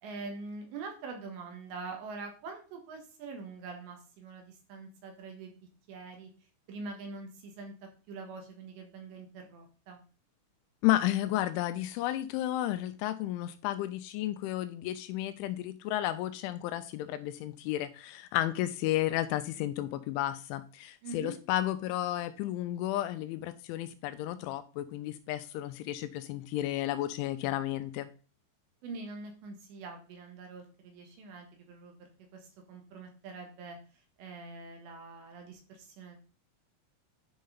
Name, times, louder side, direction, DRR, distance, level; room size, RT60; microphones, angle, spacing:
voice 1, 0.0-5.6 5.9-6.3 6.7-7.7 8.1-10.0 21.0-21.4 28.8-31.9 32.3-33.8 34.2-36.2, right 3 dB, 70° right, 3 dB, 3.5 m, -44 dB
voice 2, 10.8-28.1, left 14 dB, 85° left, 11 dB, 2.9 m, -32 dB
10.0 x 5.3 x 3.9 m, 0.38 s
omnidirectional pair, 5.7 m